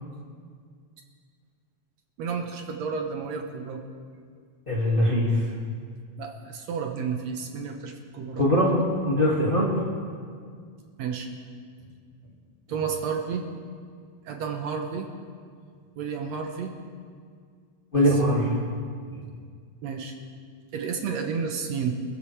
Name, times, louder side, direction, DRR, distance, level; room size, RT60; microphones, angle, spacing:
voice 1, 2.2-3.8 6.2-8.4 11.0-11.3 12.7-13.5 14.3-15.1 16.0-16.7 18.0-18.1 19.8-20.1 20.7-21.9, right 6 dB, 70° right, 4 dB, 2.2 m, -31 dB
voice 2, 4.7-5.5 8.4-8.8 9.1-9.7 17.9-18.6 19.1-19.2, equal, 20° left, -5 dB, 2.1 m, -22 dB
25.5 x 15.0 x 3.4 m, 2.1 s
omnidirectional pair, 3.3 m